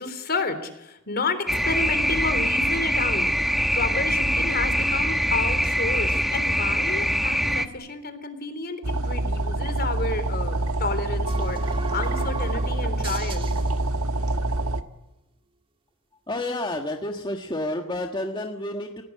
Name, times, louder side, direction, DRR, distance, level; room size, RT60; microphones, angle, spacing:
voice 1, 0.0-3.3 3.7-13.5, left 3 dB, 45° left, 10 dB, 3.6 m, -31 dB
sound 1, 1.5-7.7, equal, ahead, 1.2 m, -23 dB
sound 2, 8.8-14.8, right 2 dB, 70° right, 1.6 m, -26 dB
sound 3, 11.3-14.2, right 4 dB, 25° right, 1.7 m, -38 dB
voice 2, 16.3-19.0, left 1 dB, 20° left, 3 dB, 1.6 m, -30 dB
29.5 x 18.0 x 8.5 m, 0.95 s
head